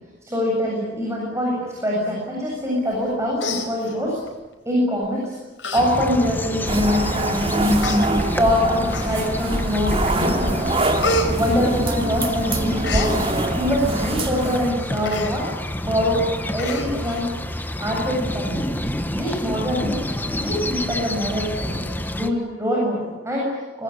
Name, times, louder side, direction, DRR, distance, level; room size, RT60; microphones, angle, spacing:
voice 1, 0.2-4.2 4.6-5.4 5.7-7.9 8.4-10.7 11.3-13.1 13.5-15.5 15.8-17.3 17.8-18.7 19.1-20.0 20.4-21.9 22.1-23.8, equal, 15° right, -3 dB, 7.8 m, -24 dB
Human voice, 2.9-3.1 3.4-4.3 5.0-5.2 5.6-5.8 6.2-6.3 7.1-7.2 7.8-8.0 8.9-9.5 9.9-10.3 10.6-12.3 12.6-13.1 15.0-15.3 15.7-15.8 16.1-16.2 16.6-17.2 17.6-17.7, left 1 dB, 75° left, 4.9 m, -28 dB
sound 1, 5.8-22.3, left 1 dB, 10° left, 1.4 m, -28 dB
sound 2, 6.7-14.7, right 1 dB, 30° right, 3.1 m, -24 dB
25.0 x 20.5 x 10.0 m, 1.2 s
head